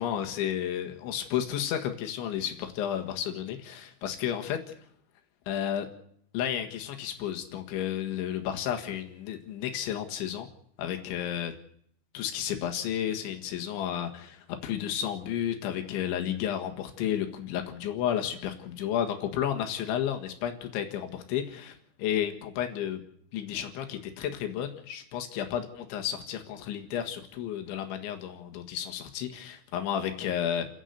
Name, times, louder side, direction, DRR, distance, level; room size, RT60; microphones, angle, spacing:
voice 1, 0.0-4.6 5.5-5.9 6.3-10.5 10.8-11.5 12.1-23.0 23.3-30.7, left 10 dB, 85° left, 5 dB, 4.0 m, -32 dB
30.0 x 11.0 x 8.2 m, 0.66 s
omnidirectional pair, 5.3 m